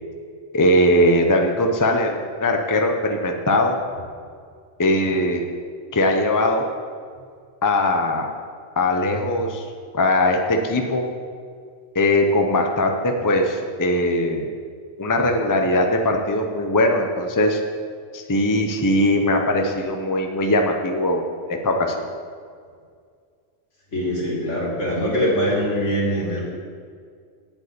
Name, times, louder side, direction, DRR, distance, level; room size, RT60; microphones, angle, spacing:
voice 1, 0.5-3.8 4.8-5.5 5.9-6.7 7.6-8.3 8.8-9.7 9.9-11.0 11.9-14.5 15.0-17.6 18.1-21.2 21.5-22.0, left 1 dB, 20° left, 3 dB, 0.8 m, -20 dB
voice 2, 23.9-26.4, equal, 75° left, -4 dB, 3.0 m, -23 dB
8.1 x 8.0 x 8.7 m, 2.1 s
omnidirectional pair, 1.2 m